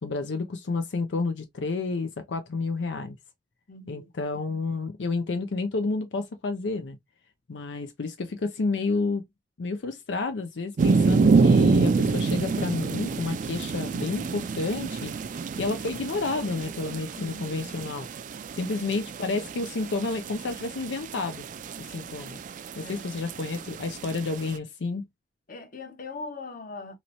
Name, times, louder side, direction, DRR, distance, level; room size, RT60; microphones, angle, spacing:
voice 1, 0.0-3.2 3.9-7.0 7.5-9.2 9.6-15.1 15.6-18.1 18.6-21.5 21.8-22.4 22.8-25.0, left 3 dB, 85° left, 0.5 m, -30 dB
voice 2, 3.7-4.1 17.2-17.7 18.6-18.8 22.8-23.0 25.5-27.0, left 3 dB, 50° left, 0.9 m, -41 dB
sound 1, 10.8-24.6, right 4 dB, 45° right, 0.3 m, -27 dB
3.0 x 2.9 x 2.6 m
head